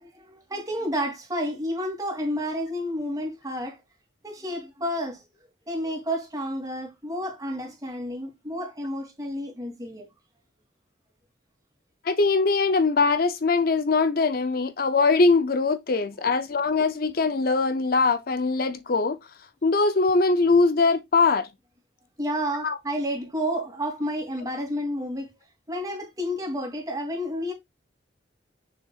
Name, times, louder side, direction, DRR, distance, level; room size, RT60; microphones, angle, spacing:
voice 1, 0.0-3.8 4.2-5.2 5.7-10.1 22.2-25.3 25.7-27.5, equal, 20° right, 2.8 m, -30 dB
voice 2, 12.1-19.2 19.6-21.5 22.6-22.8, left 4 dB, 55° left, 0.6 m, -22 dB
6.8 x 6.5 x 2.4 m
head